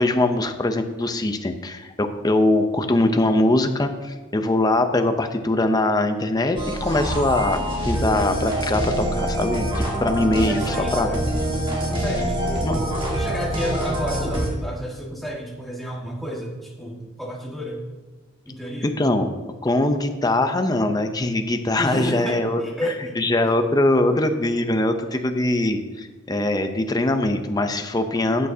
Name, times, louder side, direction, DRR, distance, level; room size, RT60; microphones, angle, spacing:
voice 1, 0.0-11.1 12.6-12.8 19.0-19.3 19.6-22.6 23.2-28.5, left 2 dB, 20° left, 6 dB, 0.6 m, -22 dB
sound 1, 6.6-14.5, right 1 dB, 25° right, 1.6 m, -25 dB
voice 2, 10.2-11.3 11.7-17.8 18.4-19.0 21.8-23.2, equal, ahead, -3 dB, 1.6 m, -31 dB
12.5 x 8.9 x 2.7 m, 1.3 s
head